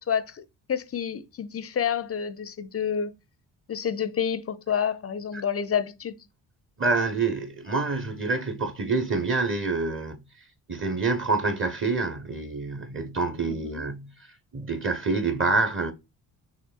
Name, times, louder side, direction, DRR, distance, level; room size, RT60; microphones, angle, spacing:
voice 1, 0.1-0.4 0.7-3.1 3.7-6.1 13.5-13.8, left 8 dB, 30° left, 0.6 m, -29 dB
voice 2, 6.8-10.2 10.7-14.3 14.5-15.9, right 3 dB, 25° right, 1.0 m, -27 dB
5.8 x 3.3 x 2.4 m
figure-of-eight pair, 40°, 48 cm